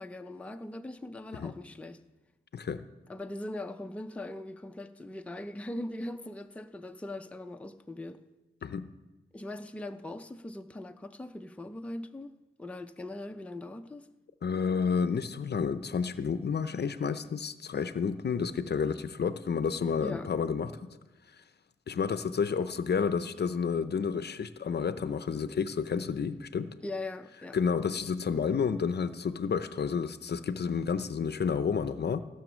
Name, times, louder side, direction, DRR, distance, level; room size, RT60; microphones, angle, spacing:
voice 1, 0.0-2.0 3.1-8.2 9.3-14.1 20.0-20.3 26.8-27.6, left 1 dB, 5° left, 0.5 m, -40 dB
voice 2, 14.4-20.7 21.9-26.7 27.5-32.2, left 6 dB, 50° left, 0.6 m, -30 dB
15.5 x 7.0 x 6.2 m
wide cardioid pair, 105°, 21 cm